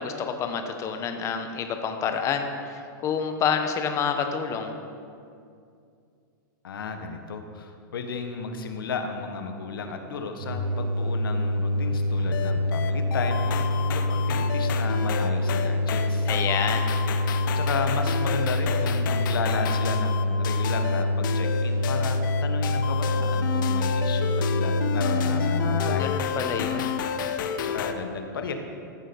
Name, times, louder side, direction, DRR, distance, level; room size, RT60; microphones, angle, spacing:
voice 1, 0.0-4.7 16.3-16.9 25.2-26.9, left 6 dB, 25° left, 6 dB, 1.0 m, -28 dB
voice 2, 6.6-16.3 17.5-26.2 27.6-28.5, left 4 dB, 85° left, 6 dB, 1.2 m, -34 dB
sound 1, 10.4-25.8, left 1 dB, 85° right, 2.2 m, -26 dB
sound 2, 12.3-27.9, left 8 dB, 65° left, 0.8 m, -31 dB
14.0 x 6.6 x 5.4 m, 2.4 s
hypercardioid pair, 135°, 11 cm